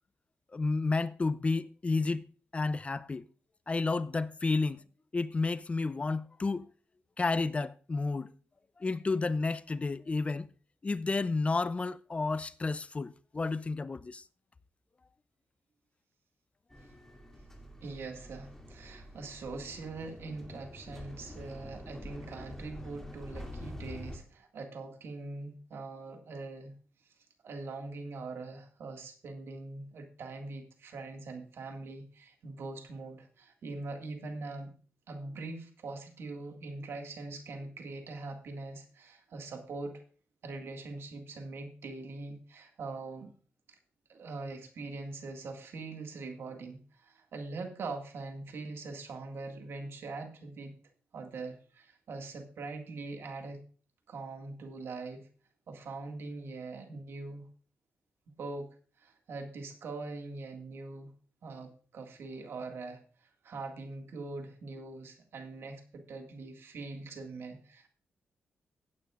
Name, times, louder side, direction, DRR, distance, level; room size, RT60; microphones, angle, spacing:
voice 1, 0.5-2.2 2.5-3.2 3.7-4.8 5.1-6.7 7.2-8.3 8.8-10.5 10.8-14.2, left 3 dB, 30° left, 0.5 m, -31 dB
sound 1, 16.7-24.2, left 1 dB, 10° left, 2.6 m, -46 dB
voice 2, 17.8-26.8 27.0-27.1 27.4-34.8 35.1-40.0 40.4-43.3 43.7-43.8 44.1-50.8 51.1-53.6 54.1-55.3 55.7-57.5 58.3-61.1 61.4-67.9, right 3 dB, 70° right, 1.9 m, -42 dB
16.0 x 9.1 x 2.4 m
cardioid pair, 80°, 4 cm